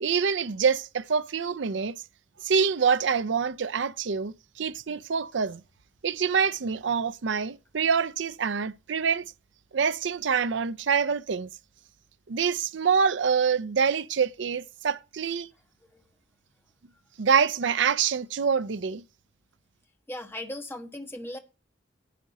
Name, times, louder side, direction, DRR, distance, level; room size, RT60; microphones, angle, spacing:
voice 1, 0.0-2.0 2.4-5.6 6.0-9.3 9.7-11.5 12.3-15.5 17.2-19.0, right 6 dB, 65° right, 0.5 m, -26 dB
voice 2, 20.1-21.4, left 1 dB, 10° left, 1.3 m, -37 dB
10.0 x 10.0 x 4.1 m
head